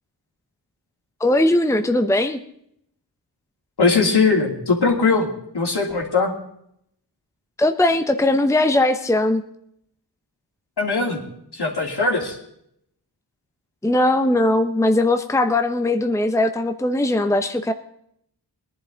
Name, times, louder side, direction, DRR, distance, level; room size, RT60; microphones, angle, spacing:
voice 1, 1.2-2.4 7.6-9.4 13.8-17.7, left 1 dB, 5° left, 7 dB, 0.8 m, -19 dB
voice 2, 3.8-5.3 5.5-6.4 10.8-11.2 11.5-12.4, left 4 dB, 65° left, 0 dB, 3.0 m, -20 dB
20.0 x 11.0 x 4.0 m, 0.72 s
wide cardioid pair, 60°, 43 cm